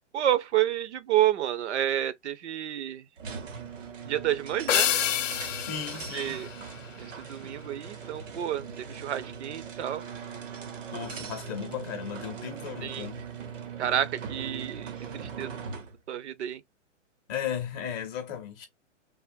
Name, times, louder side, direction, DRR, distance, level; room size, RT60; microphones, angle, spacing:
voice 1, 0.1-3.0 4.0-4.9 6.1-6.5 7.0-10.0 12.8-13.1 13.8-15.6 16.1-16.6, right 12 dB, 65° right, 0.6 m, -29 dB
sound 1, 3.2-16.0, right 6 dB, 90° right, 1.0 m, -40 dB
sound 2, 4.7-7.3, left 11 dB, 85° left, 0.5 m, -29 dB
voice 2, 5.6-6.4 10.9-13.3 17.3-18.7, left 8 dB, 20° left, 0.5 m, -35 dB
3.4 x 2.0 x 2.5 m
hypercardioid pair, 140°, 37 cm